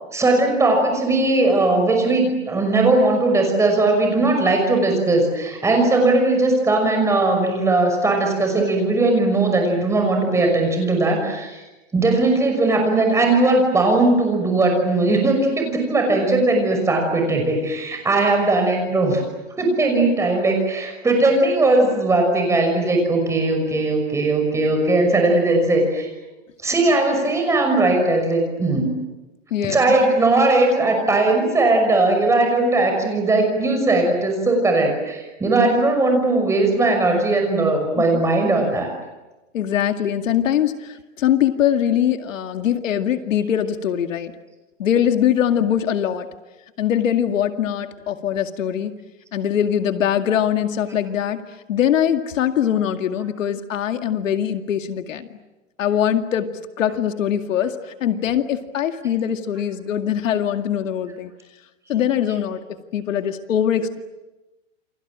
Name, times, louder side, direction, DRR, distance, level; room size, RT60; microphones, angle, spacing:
voice 1, 0.1-11.6 11.9-19.2 19.6-26.1 26.6-28.9 29.6-38.9, right 2 dB, 5° right, 3 dB, 5.8 m, -19 dB
voice 2, 29.5-30.0 38.0-38.2 39.5-44.3 44.8-46.3 46.8-48.9 49.3-51.4 51.7-55.3 55.8-56.5 56.8-57.8 58.0-61.3 61.9-62.6 62.9-64.0, left 9 dB, 80° left, 7 dB, 2.3 m, -22 dB
29.5 x 26.5 x 7.6 m, 1.1 s
supercardioid pair, 165°, 38 cm